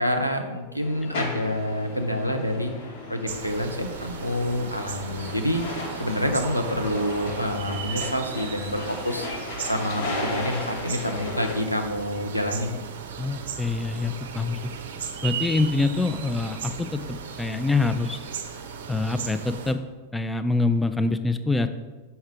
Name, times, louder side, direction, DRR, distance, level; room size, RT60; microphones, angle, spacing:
voice 1, 0.0-2.7 3.1-5.6 6.0-9.3 9.6-12.8, left 1 dB, 90° left, 5 dB, 0.6 m, -27 dB
sound 1, 0.8-11.6, left 2 dB, 55° left, 1.0 m, -36 dB
sound 2, 3.3-19.7, right 6 dB, 60° right, 0.5 m, -36 dB
voice 2, 13.2-14.6 15.2-18.2 18.9-19.8 20.1-21.7, left 3 dB, 5° left, 9 dB, 0.3 m, -25 dB
5.6 x 5.4 x 3.5 m, 1.3 s
figure-of-eight pair, 90°, 0 cm